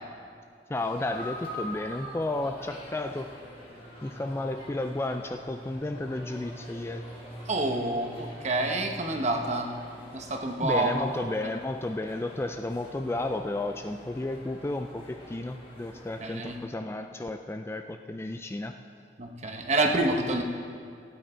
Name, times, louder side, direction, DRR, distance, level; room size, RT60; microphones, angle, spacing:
sound 1, 0.7-16.6, equal, 30° left, 2.8 m, -45 dB
voice 1, 0.7-3.3 4.0-7.0 10.6-18.7, left 2 dB, 15° left, 6 dB, 0.3 m, -32 dB
voice 2, 7.5-9.7 10.1-11.0 16.2-16.6 19.2-20.4, right 2 dB, 40° right, 3 dB, 1.1 m, -27 dB
16.0 x 9.2 x 4.4 m, 2.3 s
head